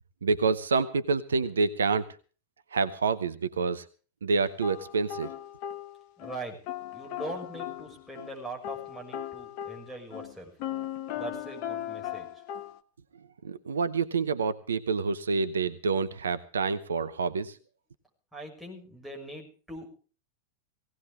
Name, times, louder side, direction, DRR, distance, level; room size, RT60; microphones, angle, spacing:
voice 1, 0.2-2.1 2.7-3.8 4.2-5.3 13.4-17.6, right 4 dB, 70° right, 15 dB, 0.8 m, -27 dB
sound 1, 4.6-6.4 6.7-8.4 8.6-12.8, left 11 dB, 45° left, 1.1 m, -38 dB
voice 2, 6.2-6.6 6.9-10.5 11.1-12.3 18.3-19.9, right 1 dB, ahead, 2 dB, 6.6 m, -41 dB
18.0 x 17.5 x 3.7 m, 0.39 s
figure-of-eight pair, 90°, 0 cm